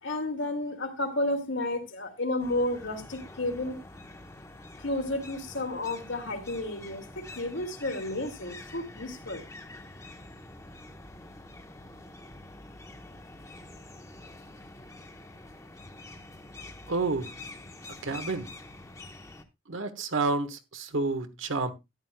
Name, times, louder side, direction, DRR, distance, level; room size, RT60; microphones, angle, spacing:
voice 1, 0.0-3.8 4.8-9.4, left 1 dB, 70° left, 2.4 m, -32 dB
sound 1, 2.4-19.4, left 2 dB, 15° left, 1.0 m, -46 dB
voice 2, 16.9-17.3 18.0-18.5 19.7-21.7, right 3 dB, 75° right, 1.4 m, -29 dB
13.5 x 10.5 x 2.3 m
head